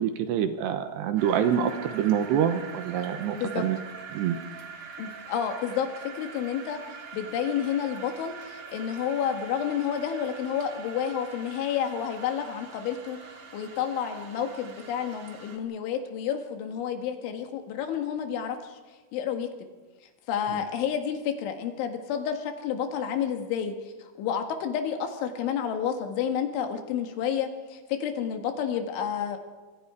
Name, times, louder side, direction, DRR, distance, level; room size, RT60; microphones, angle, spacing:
voice 1, 0.0-3.8 4.1-4.4 20.5-20.6, right 9 dB, 75° right, 8 dB, 2.9 m, -26 dB
sound 1, 1.2-15.6, right 5 dB, 50° right, 1.8 m, -44 dB
voice 2, 5.0-6.8 7.1-18.8 19.1-19.5 20.3-23.8 24.2-29.4, left 8 dB, 80° left, 5 dB, 4.0 m, -30 dB
25.5 x 23.5 x 4.9 m, 1.3 s
omnidirectional pair, 5.5 m